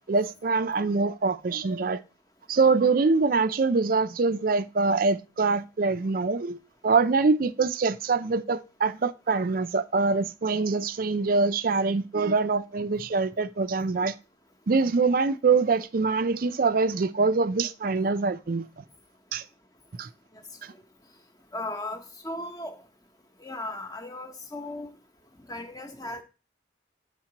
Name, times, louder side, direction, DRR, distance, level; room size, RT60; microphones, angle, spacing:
voice 1, 0.1-2.0 2.5-6.6 6.8-14.1 14.7-18.8 19.3-19.4 19.9-20.1 20.6-20.7, right 4 dB, 45° right, 0.4 m, -24 dB
voice 2, 21.5-22.8 23.4-24.9 25.5-26.2, left 2 dB, 20° left, 1.0 m, -36 dB
7.2 x 5.9 x 2.8 m
head